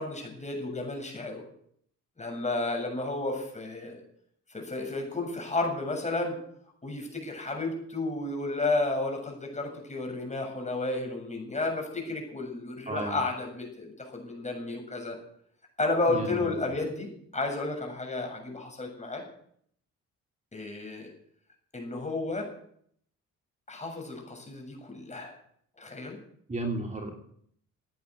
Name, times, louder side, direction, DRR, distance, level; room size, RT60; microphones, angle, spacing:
voice 1, 0.0-1.4 2.2-4.0 4.5-6.4 6.8-15.2 15.8-17.1 17.3-19.2 20.5-21.1 21.7-22.5 23.7-25.4 25.8-26.2, left 2 dB, 25° left, 2 dB, 7.3 m, -32 dB
voice 2, 12.9-13.2 16.1-16.5 26.5-27.2, right 2 dB, 25° right, 1 dB, 3.1 m, -33 dB
16.5 x 9.5 x 8.2 m, 0.66 s
cardioid pair, 90°, 30 cm